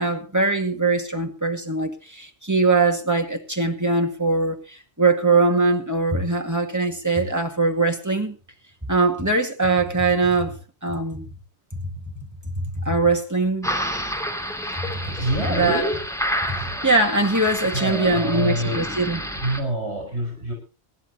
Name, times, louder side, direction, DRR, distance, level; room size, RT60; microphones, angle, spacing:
voice 1, 0.0-8.3 8.9-10.6 10.8-11.2 11.8-12.1 12.5-13.7 14.8-15.1 15.6-15.8 16.5-19.2, right 3 dB, 15° right, 2.0 m, -22 dB
sound 1, 13.6-19.6, equal, 5° left, 2.6 m, -29 dB
voice 2, 14.6-16.0 16.4-16.9 17.7-18.9 19.3-20.5, right 1 dB, 70° right, 5.2 m, -27 dB
25.5 x 11.0 x 2.9 m
omnidirectional pair, 1.1 m